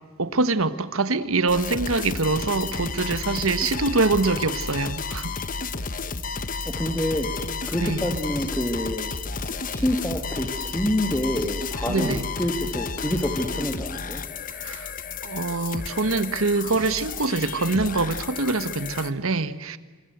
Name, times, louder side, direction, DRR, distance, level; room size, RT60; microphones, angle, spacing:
voice 1, 0.2-5.4 7.8-8.2 11.9-12.3 14.5-14.9 15.2-19.8, right 3 dB, 90° right, 1.4 m, -24 dB
sound 1, 1.5-19.1, left 4 dB, 40° left, 1.1 m, -32 dB
voice 2, 6.7-7.3 7.7-9.1 9.4-14.2, left 1 dB, 10° left, 2.1 m, -27 dB
27.0 x 25.5 x 8.0 m
head